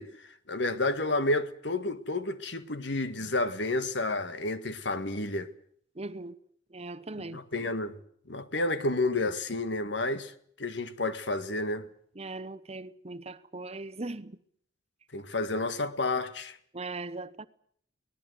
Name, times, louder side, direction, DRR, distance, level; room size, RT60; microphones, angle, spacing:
voice 1, 0.0-5.5 7.3-8.0 8.3-10.3 10.6-11.9 15.1-16.6, left 2 dB, 65° left, 1.8 m, -30 dB
voice 2, 5.9-6.3 6.7-7.4 12.1-14.4 16.7-17.5, right 2 dB, 35° right, 1.0 m, -39 dB
24.5 x 19.0 x 8.1 m
head